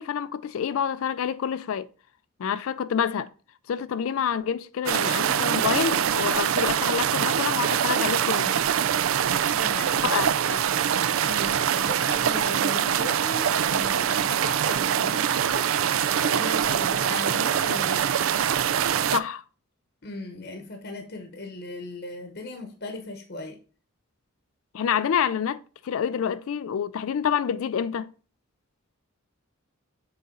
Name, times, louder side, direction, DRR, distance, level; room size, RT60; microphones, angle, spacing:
voice 1, 0.0-1.9 2.4-3.3 3.7-8.5 10.0-10.7 19.1-19.4 24.7-28.1, left 7 dB, 70° left, 0.4 m, -27 dB
sound 1, 4.9-19.2, right 9 dB, 70° right, 0.4 m, -24 dB
voice 2, 9.5-10.1 11.2-15.7 16.2-18.1 20.0-23.6, left 2 dB, 50° left, 1.0 m, -37 dB
6.8 x 4.0 x 3.7 m
head